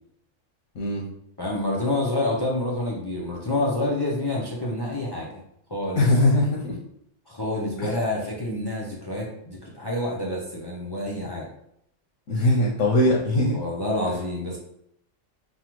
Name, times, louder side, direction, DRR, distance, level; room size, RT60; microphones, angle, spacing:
voice 1, 0.7-1.1 6.0-6.8 7.8-8.0 12.3-13.6, left 1 dB, 85° left, -2 dB, 1.1 m, -21 dB
voice 2, 1.4-5.4 5.7-6.1 7.3-11.5 13.5-14.6, left 1 dB, 30° left, -3 dB, 0.5 m, -28 dB
5.4 x 2.4 x 3.0 m, 0.75 s
omnidirectional pair, 1.3 m